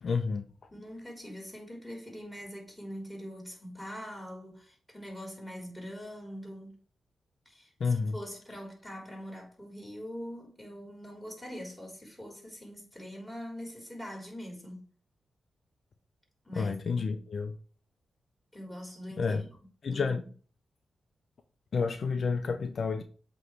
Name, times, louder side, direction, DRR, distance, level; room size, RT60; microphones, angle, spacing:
voice 1, 0.0-0.4 7.8-8.2 16.5-17.6 19.2-19.5 19.8-20.2 21.7-23.0, left 5 dB, 65° left, 0.6 m, -30 dB
voice 2, 0.7-6.8 7.5-14.9 16.5-17.2 18.5-19.4 19.9-20.2, equal, 5° left, 3.6 m, -43 dB
7.7 x 3.1 x 4.7 m
cardioid pair, 60°, 0 cm